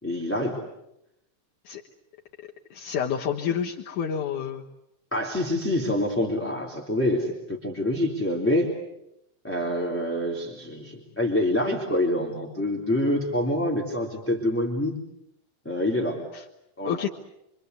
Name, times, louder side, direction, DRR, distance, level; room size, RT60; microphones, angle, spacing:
voice 1, 0.0-0.6 5.1-8.7 9.4-14.9 15.6-16.2 16.8-17.0, left 1 dB, 5° left, -2 dB, 3.2 m, -26 dB
voice 2, 2.7-4.6 16.3-16.4 16.8-17.1, left 8 dB, 65° left, -1 dB, 2.7 m, -29 dB
27.5 x 25.0 x 8.3 m, 0.84 s
omnidirectional pair, 3.9 m